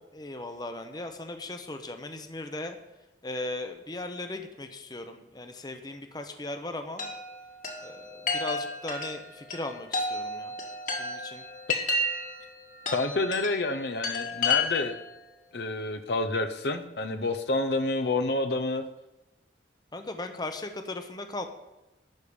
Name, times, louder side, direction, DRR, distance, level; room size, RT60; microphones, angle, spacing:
voice 1, 0.1-2.8 3.2-7.1 7.8-10.5 11.0-11.5 19.9-21.5, left 2 dB, 20° left, 7 dB, 0.8 m, -37 dB
Chime, 7.0-15.1, left 3 dB, 45° left, 1.8 m, -32 dB
voice 2, 12.9-14.9 15.5-18.8, left 2 dB, 65° left, 7 dB, 0.8 m, -28 dB
12.0 x 5.0 x 8.7 m, 0.99 s
head